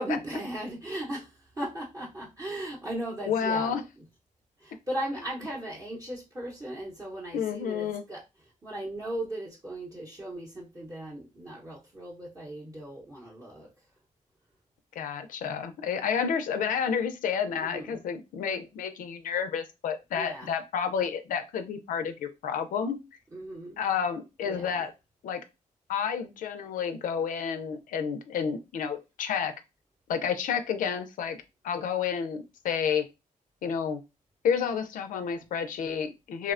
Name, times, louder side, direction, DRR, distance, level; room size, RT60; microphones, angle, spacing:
voice 1, 0.0-3.8 4.6-13.7 17.5-18.0 20.1-20.5 23.3-23.8 24.4-24.8, right 1 dB, 25° right, -5 dB, 0.7 m, -37 dB
voice 2, 3.3-3.8 7.3-8.0 15.0-23.0 23.8-24.9 25.2-25.4 25.9-29.5 30.1-31.4 31.6-33.0 33.6-34.0 34.4-36.5, left 7 dB, 75° left, 8 dB, 0.4 m, -30 dB
2.9 x 2.0 x 2.4 m, 0.25 s
cardioid pair, 95°, 14 cm